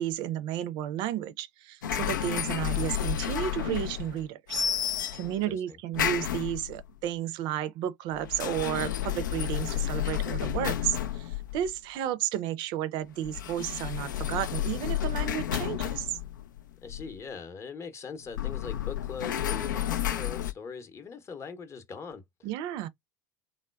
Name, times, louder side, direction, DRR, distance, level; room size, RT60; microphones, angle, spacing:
voice 1, 0.0-4.6 5.1-16.1 22.4-22.9, right 11 dB, 50° right, 0.5 m, -32 dB
sound 1, 1.8-4.2 4.5-5.4 5.9-6.9 8.1-11.8 13.2-17.2 18.3-20.5, left 11 dB, 70° left, 0.4 m, -31 dB
voice 2, 5.2-5.8 16.8-22.2, left 5 dB, 25° left, 0.8 m, -41 dB
3.5 x 2.1 x 2.2 m
figure-of-eight pair, 75°, 10 cm